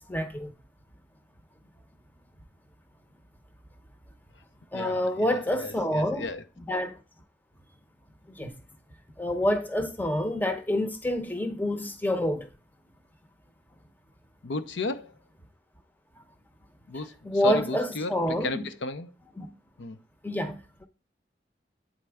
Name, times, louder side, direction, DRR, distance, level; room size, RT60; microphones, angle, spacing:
voice 1, 0.1-0.5 4.7-6.3 6.7-7.0 8.3-8.5 9.2-12.5 17.2-18.7 19.4-19.5 20.2-20.9, left 1 dB, 10° left, 0.7 m, -28 dB
voice 2, 4.7-6.4 14.4-15.1 16.9-19.1 19.8-20.0, left 2 dB, 75° left, 0.6 m, -34 dB
8.7 x 4.3 x 3.4 m
head